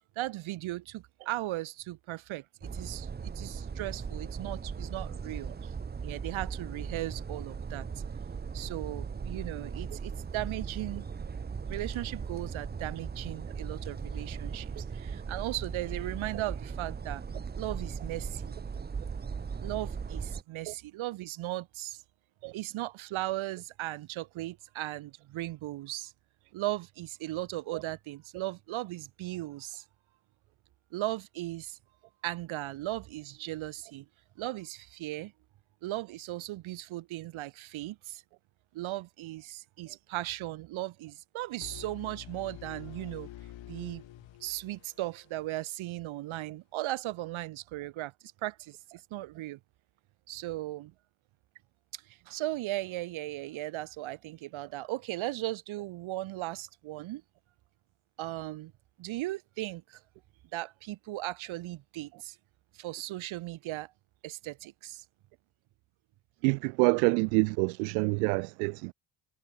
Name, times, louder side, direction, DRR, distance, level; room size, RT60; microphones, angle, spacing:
voice 1, 0.2-5.7 6.0-7.9 8.5-11.1 11.6-17.2 17.6-18.5 19.6-22.0 22.5-26.1 26.5-29.8 30.9-31.8 32.2-34.1 34.4-35.3 35.8-38.2 38.7-43.3 43.7-44.0 44.4-48.1 48.4-49.6 50.3-50.9 51.9-57.2 58.2-58.7 59.0-60.0 60.5-62.4 62.7-63.9 64.2-65.0, right 16 dB, 75° right, 4.0 m, -37 dB
sound 1, 2.6-20.4, right 5 dB, 20° right, 0.8 m, -38 dB
sound 2, 41.6-45.5, left 13 dB, 65° left, 3.9 m, -47 dB
voice 2, 66.4-68.9, right 37 dB, 90° right, 0.7 m, -27 dB
supercardioid pair, 65°, 48 cm